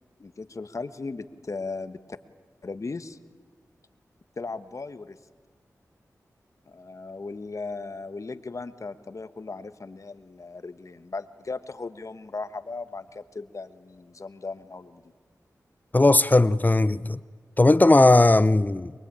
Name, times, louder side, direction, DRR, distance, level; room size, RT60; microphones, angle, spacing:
voice 1, 0.2-2.0 2.6-3.2 4.4-5.2 6.7-15.0, left 3 dB, 55° left, 1.3 m, -37 dB
voice 2, 15.9-17.2 17.6-18.9, left 2 dB, 25° left, 0.6 m, -18 dB
23.5 x 22.5 x 8.8 m
cardioid pair, 45°, 6 cm